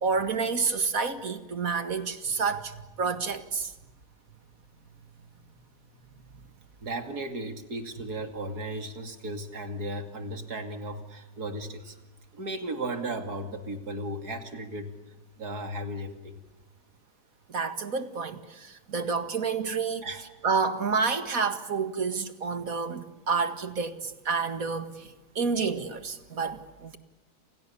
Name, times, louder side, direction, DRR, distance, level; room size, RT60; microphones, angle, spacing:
voice 1, 0.0-3.7 17.5-20.1 20.4-27.0, right 5 dB, 60° right, 10 dB, 2.4 m, -29 dB
voice 2, 6.8-12.0 12.3-14.9 15.4-16.4 20.0-20.2, right 1 dB, 80° right, 7 dB, 3.1 m, -35 dB
29.5 x 28.5 x 7.1 m, 1.1 s
omnidirectional pair, 1.6 m